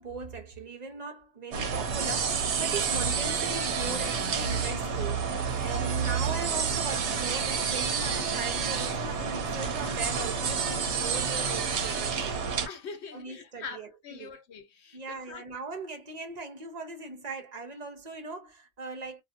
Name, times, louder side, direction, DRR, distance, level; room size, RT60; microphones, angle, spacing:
voice 1, 0.0-12.5 13.1-14.4 14.9-19.2, right 3 dB, 40° right, 0.6 m, -39 dB
sound 1, 1.5-12.7, right 6 dB, 65° right, 0.9 m, -29 dB
voice 2, 12.7-15.4, left 5 dB, 60° left, 0.9 m, -43 dB
2.7 x 2.3 x 2.4 m
omnidirectional pair, 1.4 m